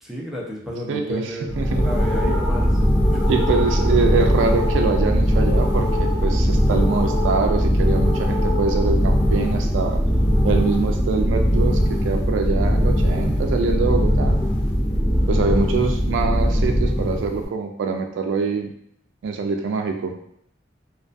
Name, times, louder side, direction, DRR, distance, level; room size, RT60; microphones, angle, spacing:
voice 1, 0.0-1.5 1.8-2.7 3.1-3.4, equal, ahead, -5 dB, 0.4 m, -32 dB
voice 2, 0.9-1.8 2.3-2.4 3.3-10.0 10.4-14.4 15.3-18.7 19.2-20.2, right 4 dB, 80° right, 4 dB, 0.3 m, -24 dB
sound 1, 1.5-17.5, equal, 60° left, 0.7 m, -20 dB
2.3 x 2.2 x 2.5 m, 0.70 s
head